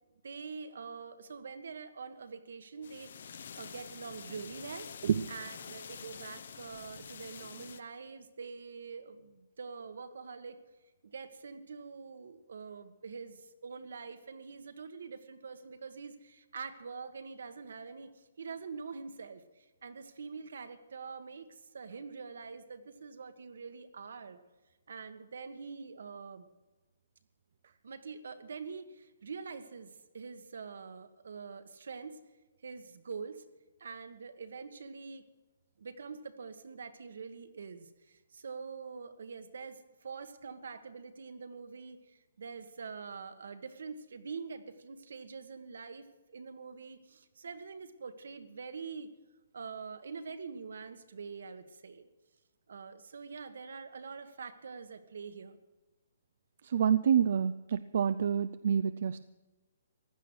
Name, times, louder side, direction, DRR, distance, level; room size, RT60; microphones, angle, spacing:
voice 1, 0.2-4.9 5.3-10.6 11.0-24.4 24.9-26.5 27.8-32.2 32.6-33.4 33.8-35.2 35.8-49.1 49.5-52.1 52.7-55.6, right 5 dB, 75° right, 9 dB, 1.6 m, -45 dB
sound 1, 2.8-7.8, left 7 dB, 60° left, 0.8 m, -47 dB
voice 2, 56.6-59.2, right 8 dB, 50° right, 13 dB, 0.5 m, -28 dB
15.5 x 11.0 x 6.4 m, 1.1 s
hypercardioid pair, 170°, 0 cm